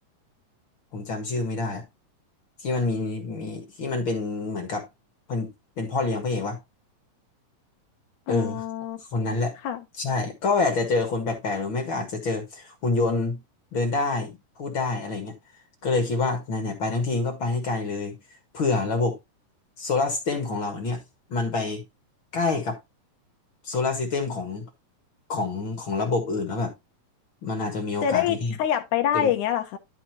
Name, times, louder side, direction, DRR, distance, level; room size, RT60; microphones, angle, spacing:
voice 1, 0.9-1.8 2.6-4.9 5.3-5.5 5.8-6.6 8.3-8.6 9.1-9.5 10.0-13.4 13.7-15.3 15.8-18.2 18.5-19.2 19.8-21.0 21.3-21.8 22.3-22.8 23.6-24.6 25.3-26.7 27.4-28.5 29.1-29.3, left 3 dB, 45° left, 2.0 m, -27 dB
voice 2, 8.3-9.0 9.3-9.8 28.0-29.8, left 9 dB, 70° left, 2.2 m, -26 dB
12.5 x 5.1 x 3.0 m
omnidirectional pair, 4.0 m